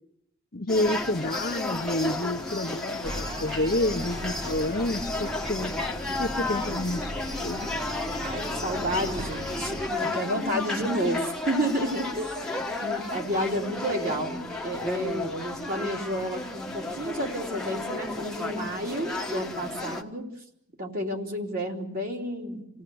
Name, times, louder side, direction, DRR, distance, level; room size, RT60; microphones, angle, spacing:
voice 1, 0.5-5.7 6.2-7.7, left 1 dB, 45° left, 8 dB, 0.9 m, -29 dB
sound 1, 0.7-20.0, left 2 dB, 5° left, 1.3 m, -33 dB
sound 2, 3.0-9.9, equal, 25° right, 1.2 m, -37 dB
voice 2, 8.2-12.3 12.8-20.3 20.8-22.8, equal, 40° right, 0 dB, 3.1 m, -31 dB
28.5 x 17.5 x 7.9 m, 0.79 s
head